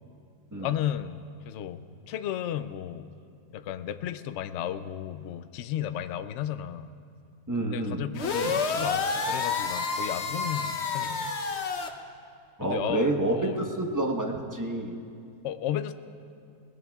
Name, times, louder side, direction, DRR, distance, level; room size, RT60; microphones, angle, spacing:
voice 1, 0.5-1.8 2.1-3.1 3.5-6.9 7.7-11.3 12.6-13.6 15.4-15.9, left 11 dB, 75° left, 10 dB, 0.6 m, -34 dB
voice 2, 7.5-8.0 12.6-14.9, right 2 dB, 15° right, 0 dB, 0.8 m, -28 dB
sound 1, 8.1-11.9, left 4 dB, 50° left, 0.9 m, -29 dB
22.0 x 18.5 x 2.3 m, 2.4 s
omnidirectional pair, 1.8 m